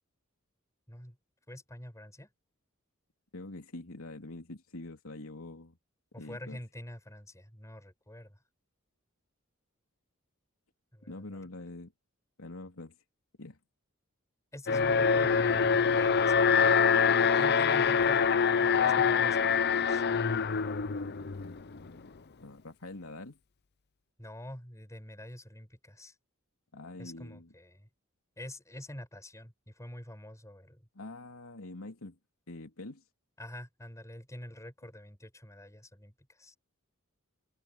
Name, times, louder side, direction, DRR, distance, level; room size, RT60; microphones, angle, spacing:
voice 1, 1.5-2.3 6.1-8.4 10.9-11.4 14.5-17.0 17.3-18.2 18.5-20.0 24.2-26.2 27.0-27.9 28.4-30.9 33.4-36.6, left 1 dB, 15° left, 5.6 m, -46 dB
voice 2, 3.3-5.8 6.2-6.6 11.1-11.9 12.4-12.9 13.4-13.6 21.2-23.4 26.7-27.5 30.9-32.2 32.5-33.0, left 2 dB, 80° left, 3.3 m, -45 dB
Alarm, 14.7-21.8, left 6 dB, 50° left, 0.7 m, -25 dB
head